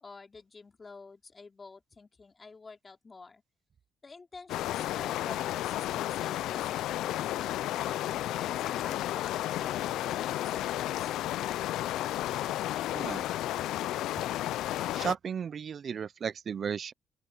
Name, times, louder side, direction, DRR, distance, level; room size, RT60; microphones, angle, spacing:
voice 1, 0.0-3.4 4.0-7.2 7.8-10.7 10.9-11.1, left 4 dB, 30° left, 3.1 m, -49 dB
sound 1, 4.5-15.1, left 14 dB, 85° left, 0.4 m, -32 dB
voice 2, 12.9-13.2 14.9-16.9, right 7 dB, 50° right, 0.4 m, -34 dB
open air
cardioid pair, 90°, 0 cm